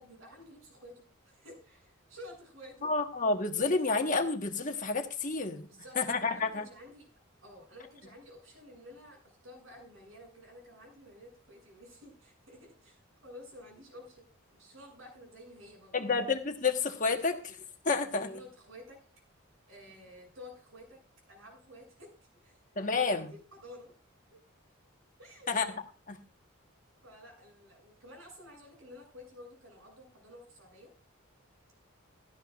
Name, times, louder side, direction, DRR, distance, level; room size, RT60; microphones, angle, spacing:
voice 1, 0.0-2.9 5.7-7.1 7.4-14.3 14.6-16.1 18.3-19.0 19.7-21.0 21.3-22.6 23.1-23.9 24.3-24.4 25.2-25.5 27.0-30.9, left 1 dB, 70° right, 1 dB, 7.6 m, -52 dB
voice 2, 2.8-5.7 6.0-6.7 15.9-17.6 17.8-18.4 22.8-23.3 25.5-25.7 26.1-26.2, left 4 dB, 40° left, 5 dB, 1.4 m, -30 dB
17.0 x 13.5 x 2.5 m, 0.35 s
head